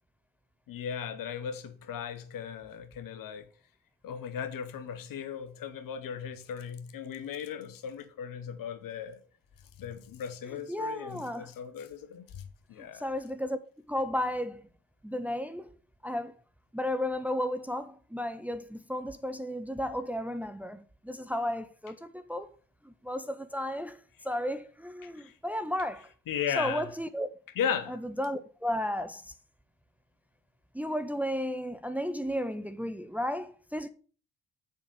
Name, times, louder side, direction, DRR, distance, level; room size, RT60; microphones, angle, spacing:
voice 1, 0.7-3.4 4.0-9.2 9.8-12.4 12.7-13.1 25.0-25.3 26.3-26.9 27.6-28.0, left 8 dB, 60° left, 1.2 m, -36 dB
voice 2, 10.5-11.5 13.0-13.6 13.9-14.6 15.0-15.7 16.0-16.3 16.7-22.5 22.8-24.0 24.2-26.1 26.6-27.3 27.9-29.2 30.7-33.9, left 1 dB, 5° right, 0.8 m, -33 dB
7.4 x 5.1 x 6.8 m
hypercardioid pair, 40°, 38 cm